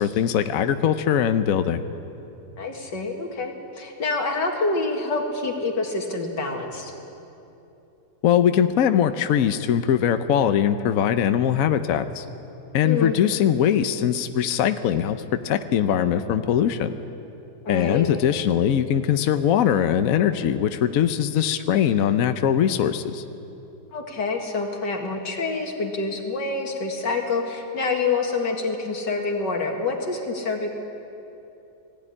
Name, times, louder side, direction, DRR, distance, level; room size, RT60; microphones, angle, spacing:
voice 1, 0.0-1.8 8.2-12.3 12.7-16.9 17.7-23.2, left 9 dB, 65° left, 9 dB, 1.0 m, -21 dB
voice 2, 2.6-6.9 12.8-13.2 17.7-18.1 23.9-30.7, left 3 dB, 85° left, 1 dB, 2.7 m, -27 dB
20.0 x 14.5 x 9.9 m, 2.9 s
omnidirectional pair, 1.8 m